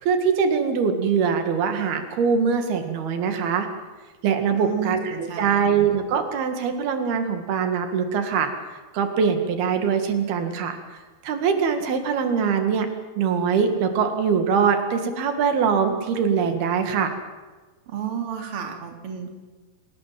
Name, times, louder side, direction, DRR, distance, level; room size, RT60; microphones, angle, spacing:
voice 1, 0.0-3.7 4.2-8.5 8.9-10.8 11.2-12.9 13.2-17.1, right 6 dB, 90° right, 6 dB, 4.0 m, -22 dB
voice 2, 4.5-5.7 17.9-19.3, right 7 dB, 40° right, 4 dB, 3.4 m, -32 dB
26.5 x 19.0 x 7.6 m, 1.3 s
omnidirectional pair, 4.3 m